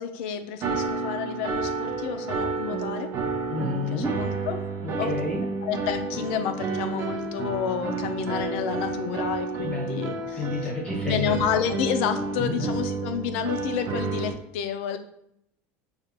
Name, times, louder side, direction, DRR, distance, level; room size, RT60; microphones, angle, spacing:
voice 1, 0.0-3.1 3.7-4.6 5.0-5.1 5.6-10.5 11.1-15.0, left 8 dB, 75° left, 8 dB, 0.5 m, -30 dB
sound 1, 0.6-14.3, right 4 dB, 45° right, 0.6 m, -30 dB
voice 2, 3.5-4.2 4.8-5.5 9.6-11.4 12.4-12.7, left 3 dB, 15° left, -2 dB, 1.1 m, -30 dB
5.2 x 2.4 x 2.8 m, 0.75 s
supercardioid pair, 145°, 7 cm